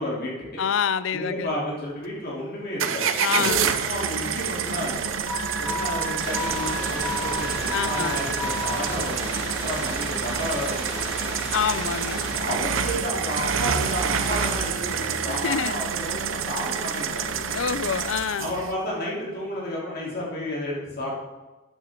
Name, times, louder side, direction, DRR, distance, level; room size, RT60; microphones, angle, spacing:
voice 1, 0.0-0.6 1.1-5.1 5.6-11.4 12.3-17.6 18.4-21.1, left 1 dB, 50° left, -5 dB, 3.4 m, -32 dB
voice 2, 0.6-1.5 3.2-3.7 7.7-8.2 11.5-12.3 15.3-15.8 17.5-18.5, left 7 dB, 75° left, 16 dB, 0.5 m, -27 dB
sound 1, 2.8-18.7, right 6 dB, 85° right, 0.7 m, -28 dB
Alarm, 5.3-8.7, equal, 35° right, 3.7 m, -32 dB
sound 2, 6.2-12.4, equal, 10° right, 4.2 m, -35 dB
12.0 x 9.8 x 3.8 m, 1.2 s
head